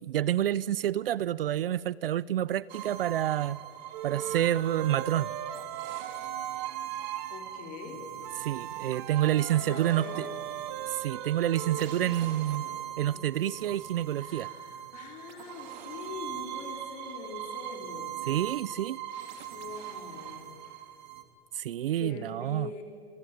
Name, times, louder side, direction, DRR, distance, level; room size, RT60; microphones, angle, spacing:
voice 1, 0.0-3.6 4.0-5.3 8.4-10.3 10.9-12.6 13.0-14.5 18.3-19.0 21.5-22.7, right 12 dB, 60° right, 0.6 m, -28 dB
sound 1, 2.7-21.2, right 11 dB, 45° right, 2.8 m, -40 dB
Wind instrument woodwind instrument, 3.9-7.4 8.2-12.0, right 10 dB, 25° right, 1.1 m, -40 dB
voice 2, 4.1-4.5 7.3-8.1 8.9-9.0 9.5-10.4 11.7-12.8 13.1-13.6 14.2-18.2 19.5-20.4 22.0-22.8, left 5 dB, 25° left, 3.2 m, -44 dB
27.5 x 23.0 x 9.4 m
hypercardioid pair, 170°, 32 cm